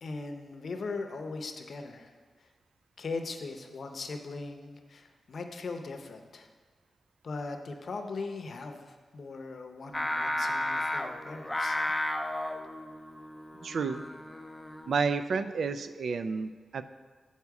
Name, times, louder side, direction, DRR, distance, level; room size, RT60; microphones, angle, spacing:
voice 1, 0.0-2.1 2.4-2.5 3.0-6.5 7.2-11.8, left 3 dB, 55° left, 5 dB, 0.6 m, -39 dB
Singing, 9.9-15.2, left 1 dB, 10° left, 0.4 m, -33 dB
voice 2, 13.6-14.0 14.9-16.8, right 5 dB, 70° right, 11 dB, 0.3 m, -30 dB
8.2 x 4.2 x 4.7 m, 1.4 s
wide cardioid pair, 135°, 0 cm